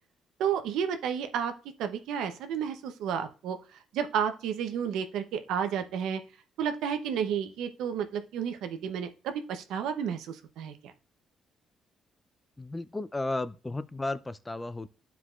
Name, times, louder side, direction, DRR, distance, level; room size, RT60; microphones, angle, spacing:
voice 1, 0.4-1.5 1.8-3.6 3.9-6.2 6.6-10.9, right 8 dB, 90° right, 0.7 m, -31 dB
voice 2, 12.6-14.9, left 2 dB, 15° left, 0.4 m, -34 dB
11.0 x 4.7 x 2.4 m
cardioid pair, 90°, 0 cm